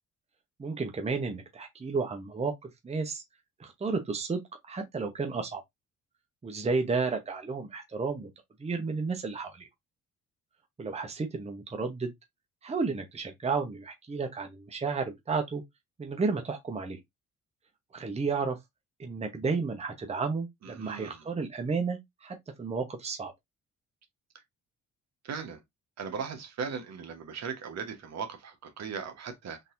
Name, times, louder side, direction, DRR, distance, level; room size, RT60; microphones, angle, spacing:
voice 1, 0.6-3.2 3.6-4.4 4.7-5.6 6.4-8.3 8.6-9.7 10.8-12.1 12.6-15.6 16.0-17.0 17.9-18.6 19.0-23.3, right 4 dB, 20° right, 0.8 m, -32 dB
voice 2, 20.6-21.3 25.2-25.6 26.0-29.6, right 6 dB, 60° right, 1.1 m, -38 dB
3.9 x 2.7 x 2.5 m
cardioid pair, 90°, 30 cm